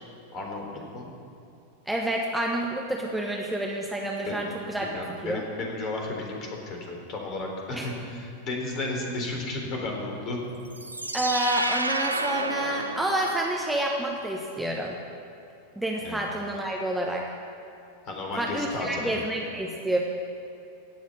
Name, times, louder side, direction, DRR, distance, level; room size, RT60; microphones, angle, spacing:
voice 1, 0.3-1.1 4.3-4.5 4.8-10.4 16.0-16.2 18.1-19.2, left 2 dB, 35° left, 1 dB, 3.8 m, -33 dB
voice 2, 1.9-4.9 5.2-5.4 7.7-7.9 11.1-15.0 15.8-17.2 18.4-20.0, right 1 dB, 5° right, -1 dB, 1.3 m, -29 dB
sound 1, 10.7-13.8, right 2 dB, 80° right, 0.7 m, -30 dB
17.0 x 7.2 x 9.5 m, 2.7 s
figure-of-eight pair, 90°, 0 cm